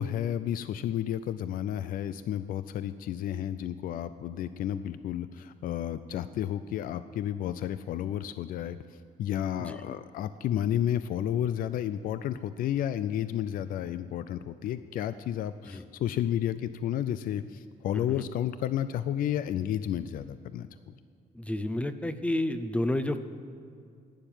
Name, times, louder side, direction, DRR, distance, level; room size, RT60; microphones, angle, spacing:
voice 1, 0.0-8.8 9.2-20.9, left 10 dB, 75° left, 13 dB, 0.4 m, -31 dB
voice 2, 21.3-23.2, left 1 dB, 10° left, 11 dB, 0.5 m, -30 dB
11.5 x 10.0 x 8.9 m, 2.3 s
cardioid pair, 160°, 15 cm